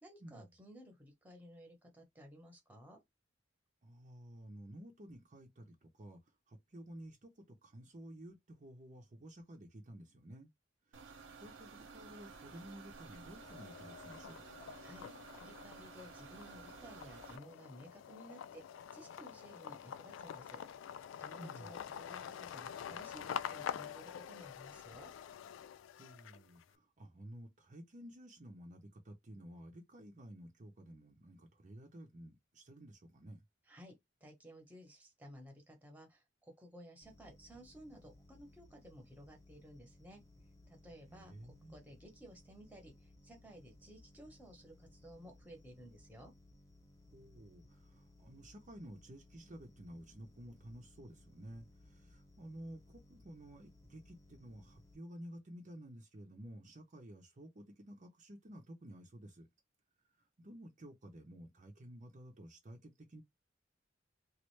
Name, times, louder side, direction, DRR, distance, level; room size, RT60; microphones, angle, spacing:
voice 1, 0.0-3.0 14.8-15.1 15.4-18.6 18.9-20.6 21.2-25.1 33.7-33.9 34.2-40.2 40.7-46.3, equal, 10° right, 1.0 m, -56 dB
voice 2, 3.8-6.2 6.5-10.5 10.9-14.4 21.4-21.8 26.0-33.4 41.1-41.8 47.1-59.5 60.4-63.2, right 1 dB, 40° right, 0.7 m, -53 dB
sound 1, 10.9-17.4, right 5 dB, 90° right, 0.7 m, -54 dB
sound 2, 12.1-12.7 13.1-26.6, left 8 dB, 80° left, 0.3 m, -47 dB
sound 3, 37.0-55.0, left 1 dB, 20° left, 0.9 m, -62 dB
3.1 x 2.5 x 3.2 m
head